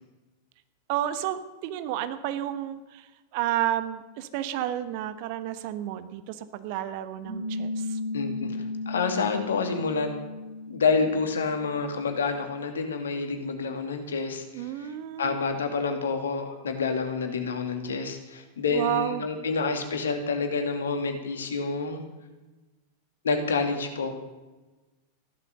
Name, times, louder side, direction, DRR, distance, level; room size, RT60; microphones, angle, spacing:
voice 1, 0.9-8.0 14.5-15.4 18.7-19.2, right 12 dB, 45° right, 11 dB, 1.1 m, -31 dB
Piano, 7.2-12.3, left 2 dB, 70° right, 6.6 m, -35 dB
voice 2, 8.1-8.6 8.9-10.1 10.7-14.9 15.2-22.0 23.2-24.1, left 4 dB, 65° left, 5 dB, 2.5 m, -28 dB
15.0 x 12.0 x 6.8 m, 1.1 s
figure-of-eight pair, 90°, 0 cm